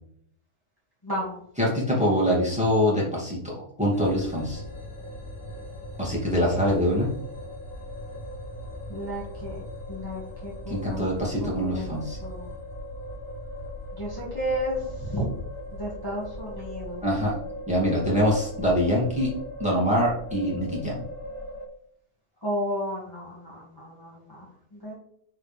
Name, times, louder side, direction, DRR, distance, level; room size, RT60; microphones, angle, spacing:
voice 1, 1.0-1.4 8.9-9.5 9.9-11.1 11.4-12.5 14.0-15.2 15.8-17.0 22.4-24.5 24.7-24.9, equal, 15° left, -7 dB, 2.0 m, -33 dB
voice 2, 1.6-4.6 6.0-7.1 10.7-12.2 17.0-17.3 17.7-19.3 19.6-21.0, equal, 5° right, -5 dB, 2.7 m, -24 dB
sound 1, 3.9-21.7, equal, 55° left, 2.7 m, -39 dB
9.8 x 4.7 x 3.5 m, 0.68 s
omnidirectional pair, 1.8 m